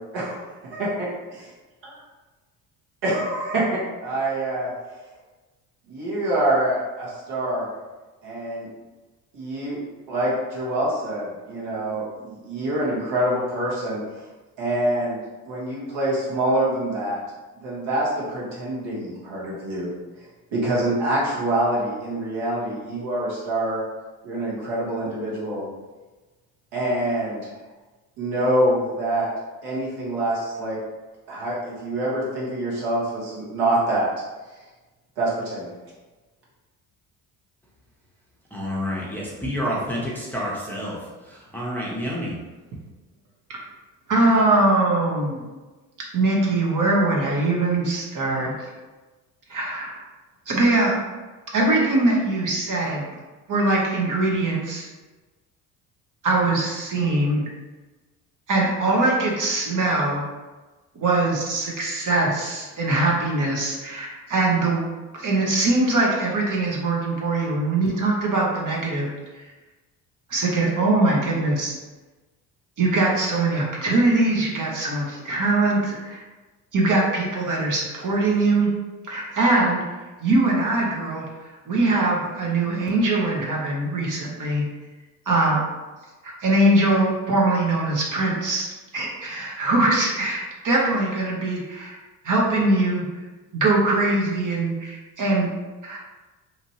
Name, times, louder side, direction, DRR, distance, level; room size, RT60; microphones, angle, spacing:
voice 1, 0.0-0.4 1.8-2.0 3.0-4.7 5.9-7.7 8.2-8.7 9.3-9.8 10.1-14.3 14.6-15.2 15.4-17.2 17.6-23.8 24.2-25.7 26.7-27.5 28.2-29.3 29.6-30.8 31.3-34.1 35.2-35.7, right 1 dB, 60° right, -6 dB, 1.3 m, -25 dB
voice 2, 38.5-41.0 41.3-42.4, equal, 5° left, -6 dB, 0.8 m, -29 dB
voice 3, 44.1-45.5 46.1-48.7 49.5-50.0 50.5-51.0 51.5-53.1 53.5-54.9 56.2-57.4 58.5-60.2 60.9-64.8 65.1-69.1 70.3-71.7 72.8-76.2 76.7-78.7 79.1-79.8 80.2-81.2 81.7-84.7 85.3-85.6 86.2-92.0 92.2-93.0 93.5-95.5 95.8-96.0, right 2 dB, 40° right, -3 dB, 1.0 m, -22 dB
2.9 x 2.5 x 2.9 m, 1.2 s
hypercardioid pair, 60°, 46 cm